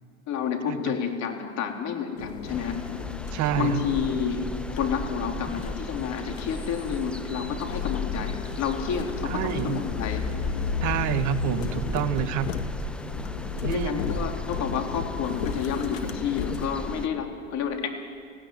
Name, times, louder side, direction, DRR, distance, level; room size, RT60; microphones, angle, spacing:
voice 1, 0.3-2.8 3.6-4.4 4.7-10.3 13.7-17.9, left 7 dB, 45° left, 3 dB, 3.7 m, -30 dB
sound 1, 2.2-16.7, left 7 dB, 80° left, 1.7 m, -34 dB
sound 2, 2.5-17.1, equal, 5° left, 1.0 m, -37 dB
voice 2, 3.3-3.8 9.2-9.8 10.8-12.5 13.6-14.0, right 10 dB, 50° right, 12 dB, 1.5 m, -27 dB
17.5 x 17.0 x 9.4 m, 2.3 s
hypercardioid pair, 95°, 38 cm